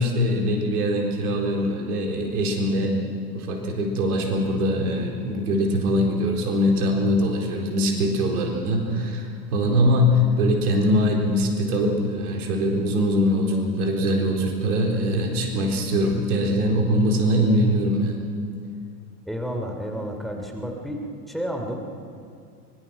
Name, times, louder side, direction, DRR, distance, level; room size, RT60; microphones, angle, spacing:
voice 1, 0.0-3.0 3.3-18.1, equal, 65° right, 2 dB, 4.2 m, -22 dB
voice 2, 19.2-21.8, equal, ahead, 2 dB, 3.0 m, -31 dB
24.5 x 23.0 x 6.0 m, 2.4 s
figure-of-eight pair, 90°, 48 cm